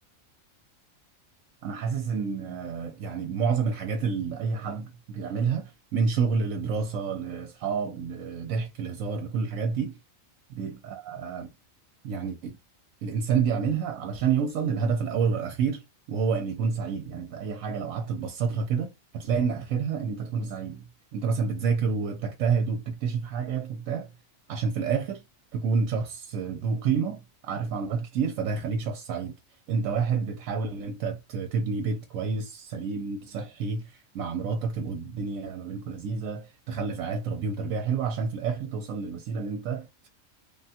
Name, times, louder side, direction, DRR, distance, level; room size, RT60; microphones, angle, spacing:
voice 1, 1.6-10.0 10.5-11.5 12.0-12.6 13.0-20.8 21.1-24.1 24.5-25.2 25.5-29.4 29.7-40.1, right 5 dB, 80° right, 1.0 m, -29 dB
3.3 x 2.2 x 2.7 m
omnidirectional pair, 1.4 m